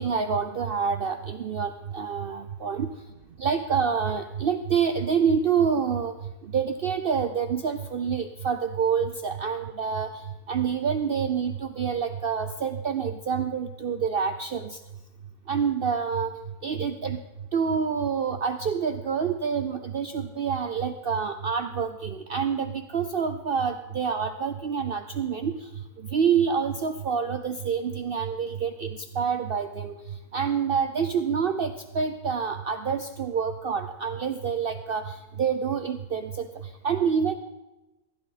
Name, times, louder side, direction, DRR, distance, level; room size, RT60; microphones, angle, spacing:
voice 1, 0.0-2.9 3.4-6.2 6.4-10.1 10.5-14.8 15.5-16.3 16.6-17.2 17.5-25.6 26.1-29.9 30.3-36.5 36.8-37.4, right 6 dB, 75° right, 8 dB, 0.5 m, -27 dB
15.5 x 11.0 x 4.1 m, 1.1 s
omnidirectional pair, 1.7 m